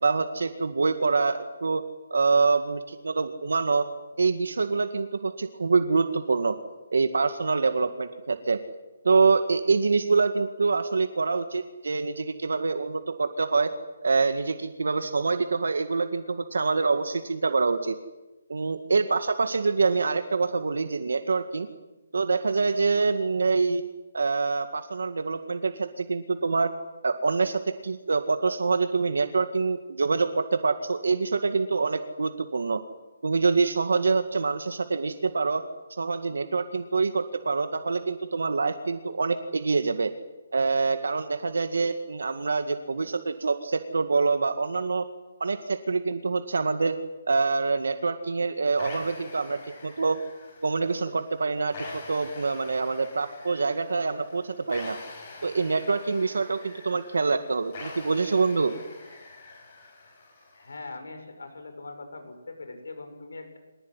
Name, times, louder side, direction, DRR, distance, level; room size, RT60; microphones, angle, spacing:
voice 1, 0.0-1.8 2.1-3.9 4.2-6.6 6.9-8.6 9.0-13.7 14.0-18.0 18.5-21.7 22.1-23.8 24.1-26.7 27.0-32.8 33.2-35.6 35.9-40.1 40.5-45.0 45.4-46.9 47.3-50.2 50.6-55.0 55.4-58.7, right 4 dB, 80° right, 8 dB, 2.0 m, -25 dB
sound 1, 48.8-60.8, left 3 dB, 25° left, 6.2 m, -45 dB
voice 2, 60.5-63.6, left 3 dB, 80° left, 7 dB, 6.8 m, -41 dB
24.5 x 19.5 x 9.8 m, 1.1 s
hypercardioid pair, 180°, 0 cm